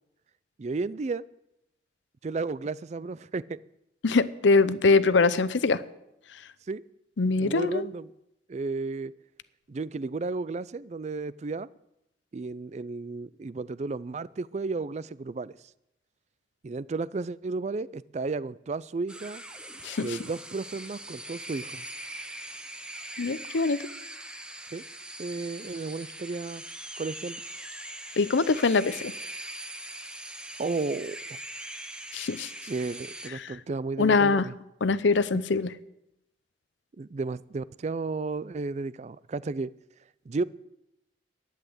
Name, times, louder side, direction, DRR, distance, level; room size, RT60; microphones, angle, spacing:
voice 1, 0.6-1.2 2.2-3.6 6.7-6.8 7.4-8.1 8.5-9.1 9.7-11.7 12.3-15.6 16.6-19.4 20.0-21.8 24.7-24.8 25.2-26.6 27.0-27.4 30.6-31.4 32.7-34.5 37.0-39.7 40.3-40.4, right 3 dB, 40° right, 18 dB, 0.4 m, -33 dB
voice 2, 4.0-5.8 7.2-7.8 19.8-20.2 23.2-23.8 28.2-29.1 32.1-32.5 33.4-33.6 34.0-34.5 34.8-35.7, left 4 dB, 80° left, 15 dB, 0.7 m, -23 dB
sound 1, 19.1-33.3, right 1 dB, 5° right, 0.7 m, -41 dB
11.5 x 10.0 x 7.9 m, 0.86 s
head